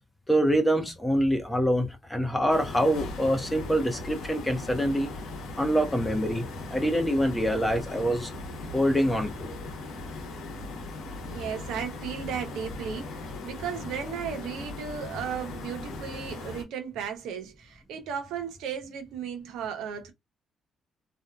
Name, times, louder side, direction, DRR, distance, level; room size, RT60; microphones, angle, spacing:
voice 1, 0.3-5.1 5.6-8.3 8.7-9.5, equal, 10° left, 0.8 m, -25 dB
sound 1, 2.5-16.6, left 2 dB, 85° left, 0.8 m, -39 dB
voice 2, 11.2-20.1, right 7 dB, 90° right, 0.7 m, -35 dB
2.6 x 2.2 x 2.2 m
cardioid pair, 90°, 0 cm